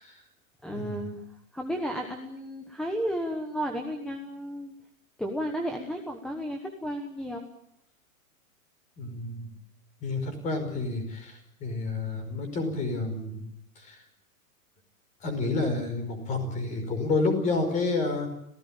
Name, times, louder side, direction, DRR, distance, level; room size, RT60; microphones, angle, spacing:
voice 1, 0.6-1.2 1.5-4.7 5.2-7.5, equal, ahead, 3 dB, 1.1 m, -33 dB
voice 2, 9.0-9.5 10.0-13.5 13.8-14.0 15.2-18.3, left 3 dB, 15° left, 8 dB, 5.1 m, -29 dB
26.5 x 17.0 x 8.9 m, 0.76 s
hypercardioid pair, 170°, 42 cm